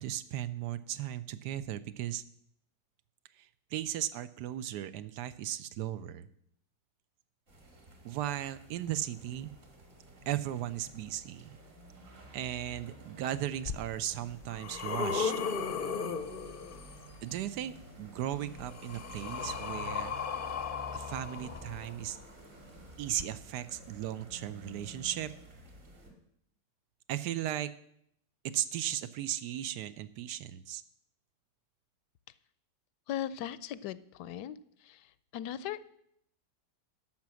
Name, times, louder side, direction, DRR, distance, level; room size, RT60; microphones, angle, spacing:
voice 1, 0.0-2.2 3.4-6.3 8.0-9.5 10.3-11.6 12.3-15.3 17.2-20.1 20.9-22.2 23.0-25.3 27.1-27.7 28.4-30.8, right 12 dB, 75° right, 14 dB, 1.2 m, -36 dB
sound 1, 7.5-26.1, right 1 dB, 45° right, 2.3 m, -52 dB
sound 2, 13.7-13.8 14.3-17.1 18.3-22.2 23.1-23.2, left 6 dB, 50° left, 0.6 m, -36 dB
voice 2, 33.1-36.0, left 11 dB, 80° left, 17 dB, 1.1 m, -39 dB
12.0 x 5.9 x 7.6 m, 0.74 s
omnidirectional pair, 1.8 m